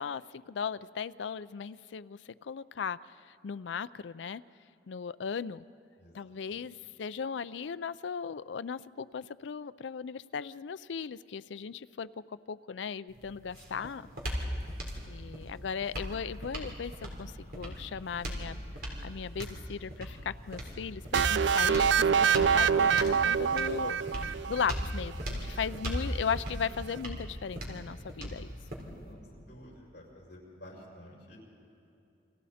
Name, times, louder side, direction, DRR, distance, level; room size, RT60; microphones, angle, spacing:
voice 1, 0.0-4.4 4.9-5.6 6.1-14.1 15.0-28.5, left 6 dB, 90° left, 16 dB, 0.4 m, -37 dB
voice 2, 6.0-6.3 25.3-25.4 29.0-31.4, left 1 dB, 65° left, -4 dB, 6.6 m, -52 dB
sound 1, 13.1-29.1, equal, 55° right, 3.8 m, -39 dB
sound 2, 21.1-24.9, right 7 dB, 80° right, 0.4 m, -25 dB
30.0 x 25.0 x 4.3 m, 2.7 s
head